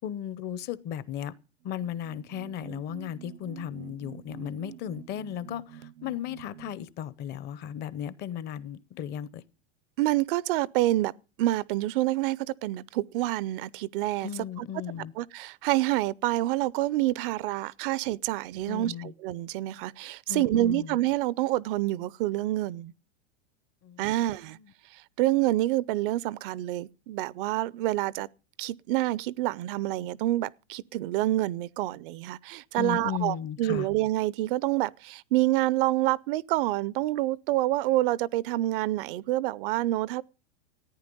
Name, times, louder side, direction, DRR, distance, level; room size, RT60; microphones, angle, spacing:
voice 1, 0.0-1.3 1.6-9.4 14.2-15.1 18.7-19.1 20.3-21.0 23.8-24.1 32.8-33.9, left 10 dB, 30° left, 0.7 m, -35 dB
sound 1, 1.6-6.9, right 11 dB, 80° right, 0.8 m, -47 dB
voice 2, 10.0-11.1 11.4-14.3 14.6-14.7 15.2-22.9 24.0-24.6 24.9-28.3 28.6-40.2, right 16 dB, 55° right, 0.5 m, -27 dB
14.0 x 9.5 x 5.3 m
supercardioid pair, 150°, 33 cm